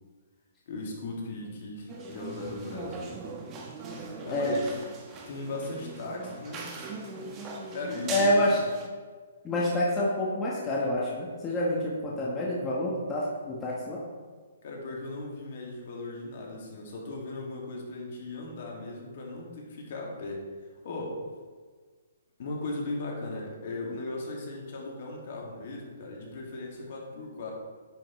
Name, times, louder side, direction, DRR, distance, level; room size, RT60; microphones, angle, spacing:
voice 1, 0.7-3.1 4.2-4.8 5.3-6.7 7.7-8.5 9.5-9.6 12.0-12.2 14.6-20.5 20.8-21.2 22.4-27.5, left 2 dB, 55° left, -2 dB, 2.2 m, -37 dB
sound 1, 1.9-8.9, right 3 dB, 25° right, 1.0 m, -40 dB
voice 2, 8.1-8.6 9.4-14.0, left 1 dB, 15° left, -5 dB, 1.2 m, -27 dB
10.0 x 5.8 x 3.2 m, 1.5 s
hypercardioid pair, 150°, 0 cm